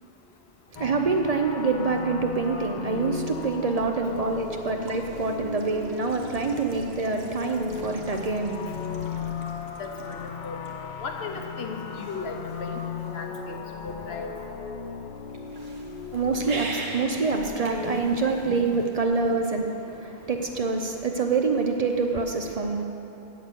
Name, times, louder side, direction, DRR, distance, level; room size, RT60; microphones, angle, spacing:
voice 1, 0.7-9.0 16.1-22.8, right 4 dB, 45° right, 3 dB, 0.6 m, -26 dB
sound 1, 0.8-18.0, left 6 dB, 55° left, 0.7 m, -37 dB
sound 2, 2.7-19.4, right 3 dB, 75° right, 1.2 m, -44 dB
voice 2, 9.8-10.6 11.0-14.3, left 3 dB, 85° left, 2 dB, 1.2 m, -36 dB
8.2 x 6.7 x 8.0 m, 2.9 s
omnidirectional pair, 1.0 m